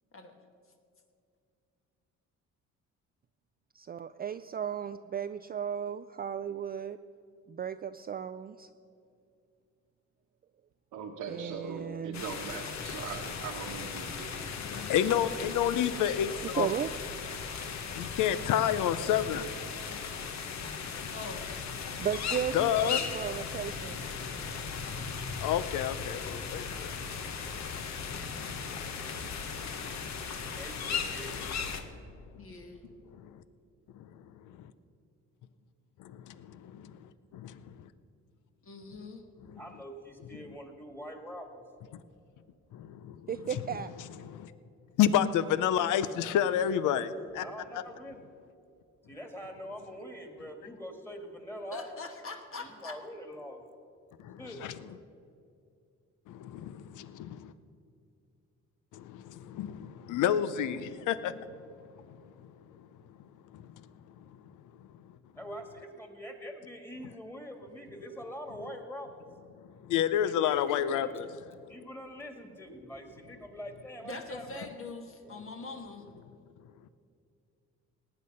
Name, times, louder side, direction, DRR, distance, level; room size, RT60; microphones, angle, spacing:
voice 1, 3.8-7.0 7.5-8.7 11.3-12.2 16.4-16.9 17.5-17.6 22.0-24.0 43.3-43.9, right 8 dB, 30° right, 10 dB, 0.4 m, -35 dB
voice 2, 10.9-14.5 14.8-15.2, right 6 dB, 80° right, 3 dB, 1.2 m, -41 dB
sound 1, 12.1-31.8, left 6 dB, 65° left, 1.2 m, -37 dB
voice 3, 14.6-16.7 18.0-19.4 22.5-23.0 25.4-27.0 33.2-33.3 36.3-36.9 37.3-37.6 39.5-39.6 42.7-43.2 44.2-44.5 45.0-47.4 54.2-54.7 56.3-57.5 58.9-61.3 63.5-63.6 69.9-71.3, left 10 dB, 85° left, 14 dB, 0.7 m, -29 dB
voice 4, 21.1-21.5 32.4-32.8 38.7-39.2 51.7-53.0 74.0-76.1, left 3 dB, 45° left, 4 dB, 1.5 m, -42 dB
voice 5, 30.5-31.6 32.4-32.9 33.2-33.3 39.6-41.6 47.4-48.3 49.0-52.0 52.6-53.6 54.4-54.6 65.3-69.3 70.2-71.1 71.7-74.7 75.2-75.4, equal, 10° left, 4 dB, 2.0 m, -44 dB
18.0 x 8.9 x 5.5 m, 2.5 s
cardioid pair, 90°, 30 cm